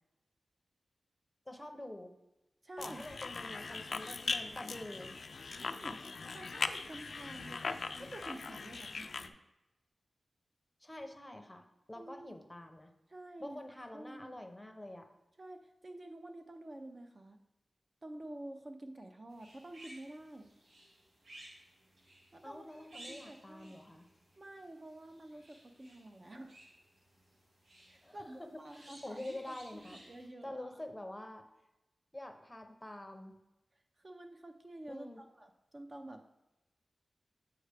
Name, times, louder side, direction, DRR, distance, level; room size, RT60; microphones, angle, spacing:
voice 1, 1.5-2.1 2.8-5.1 10.8-12.9 13.4-15.1 22.4-24.1 28.0-28.5 28.7-30.0 30.4-31.4 32.1-33.4 34.9-35.2, left 1 dB, 10° left, 5 dB, 0.7 m, -47 dB
voice 2, 2.6-3.1 5.5-6.0 6.3-9.4 11.9-12.3 13.1-13.6 13.9-14.4 15.4-17.4 18.0-20.5 22.3-22.7 22.9-23.7 24.4-26.6 27.9-30.8 34.0-36.3, right 1 dB, 35° right, 4 dB, 0.6 m, -49 dB
sound 1, 2.8-9.3, left 4 dB, 60° left, 0.3 m, -40 dB
sound 2, 19.3-30.3, right 1 dB, 90° right, 1.7 m, -58 dB
7.8 x 4.7 x 3.4 m, 0.97 s
wide cardioid pair, 90°, 0 cm